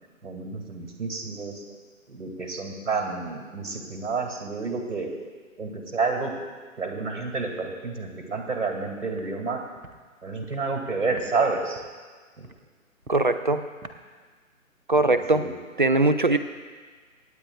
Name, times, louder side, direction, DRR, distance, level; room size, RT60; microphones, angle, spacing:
voice 1, 0.2-1.6 2.1-5.1 5.6-6.3 6.8-9.6 10.2-11.8 12.4-12.5 15.1-15.5, right 4 dB, 55° right, 2 dB, 2.4 m, -29 dB
Walk footsteps, 9.1-9.3 9.8-9.9 10.4-10.6 11.1-11.3 11.7-12.0 12.4-12.6 13.0-13.3 13.8-14.0, right 3 dB, 85° right, 1.1 m, -45 dB
voice 2, 13.1-13.7 14.9-15.4 15.8-16.4, right 2 dB, 40° right, 10 dB, 0.5 m, -21 dB
26.5 x 9.1 x 2.4 m, 1.5 s
figure-of-eight pair, 140°, 42 cm